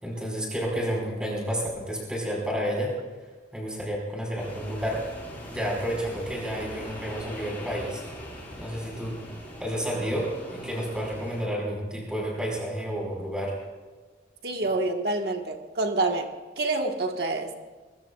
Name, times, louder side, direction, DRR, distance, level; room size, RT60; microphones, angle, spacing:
voice 1, 0.0-2.9 3.5-5.0 5.5-8.0 8.6-9.2 9.6-13.5, equal, 5° right, -2 dB, 5.0 m, -30 dB
sound 1, 4.4-11.4, equal, 10° left, 5.4 m, -41 dB
voice 2, 14.4-16.3 16.6-17.5, right 2 dB, 60° right, 3 dB, 1.5 m, -27 dB
23.5 x 22.0 x 2.4 m, 1.4 s
head